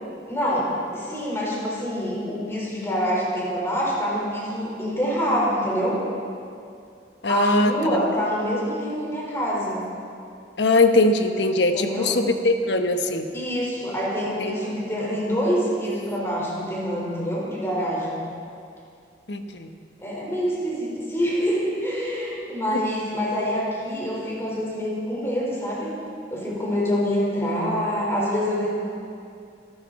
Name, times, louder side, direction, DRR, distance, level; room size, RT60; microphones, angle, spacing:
voice 1, 0.3-6.0 7.3-9.8 11.7-12.1 13.3-18.2 20.0-26.0 26.3-28.7, equal, 15° left, -5 dB, 4.5 m, -26 dB
voice 2, 7.2-8.1 10.6-13.3 14.4-14.5 19.3-19.7, left 2 dB, 80° left, 6 dB, 1.2 m, -21 dB
25.5 x 13.5 x 4.3 m, 2.5 s
head